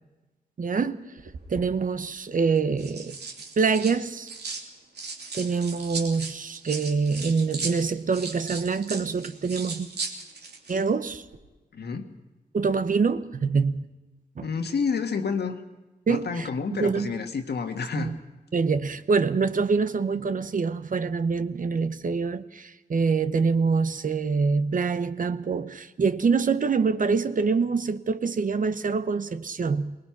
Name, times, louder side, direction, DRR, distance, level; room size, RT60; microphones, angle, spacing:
voice 1, 0.6-1.2 1.5-3.2 3.6-4.3 5.3-9.9 10.7-11.2 12.5-13.9 14.4-14.5 16.1-17.1 18.0-18.2 18.5-30.0, right 5 dB, 55° right, 0.9 m, -25 dB
sound 1, 1.2-1.7 2.6-4.7 4.9-10.8 11.1-11.4, right 4 dB, 80° right, 2.9 m, -37 dB
voice 2, 11.7-12.1 14.4-15.6 16.1-18.1, left 5 dB, 75° left, 1.8 m, -29 dB
23.5 x 21.0 x 5.9 m
wide cardioid pair, 150°, 17 cm